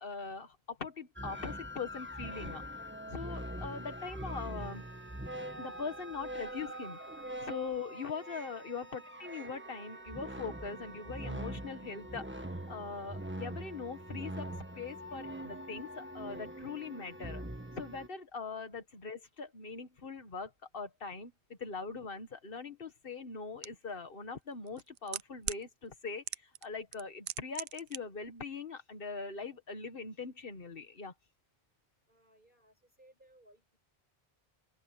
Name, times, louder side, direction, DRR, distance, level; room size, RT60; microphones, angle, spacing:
voice 1, 0.0-4.8 5.6-7.0 7.4-17.4 17.8-31.1, left 4 dB, 55° left, 1.9 m, -42 dB
sound 1, 1.2-18.1, right 1 dB, 10° right, 1.5 m, -43 dB
sound 2, 23.6-23.7 24.7-25.6 26.3-26.7 26.9-28.0 28.2-28.3, right 12 dB, 80° right, 0.9 m, -38 dB
voice 2, 32.1-33.8, right 1 dB, 50° right, 6.8 m, -63 dB
open air
omnidirectional pair, 1.1 m